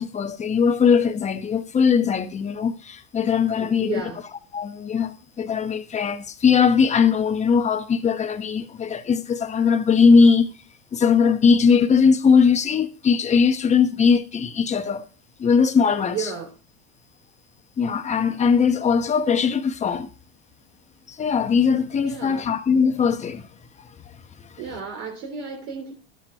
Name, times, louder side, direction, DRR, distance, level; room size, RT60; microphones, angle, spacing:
voice 1, 0.0-4.0 4.5-10.5 10.9-15.1 15.4-16.3 17.8-20.1 21.1-23.5, left 6 dB, 25° left, 1.0 m, -20 dB
voice 2, 3.6-4.2 16.1-16.5 22.0-22.5 24.6-25.9, right 6 dB, 50° right, 3.3 m, -33 dB
12.0 x 8.9 x 4.5 m
supercardioid pair, 125°, 30 cm